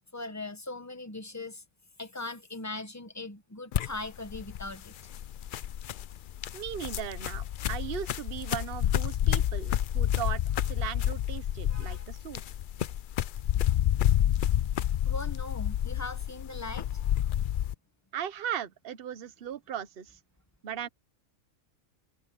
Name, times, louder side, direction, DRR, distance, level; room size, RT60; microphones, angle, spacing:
voice 1, 0.0-1.6 2.0-4.9 11.7-12.1 15.1-16.9, left 2 dB, 15° left, 1.1 m, -40 dB
sound 1, 3.7-17.7, left 11 dB, 70° left, 0.5 m, -29 dB
voice 2, 6.5-12.4 18.1-20.2 20.6-20.9, right 9 dB, 50° right, 1.0 m, -37 dB
omnidirectional pair, 1.4 m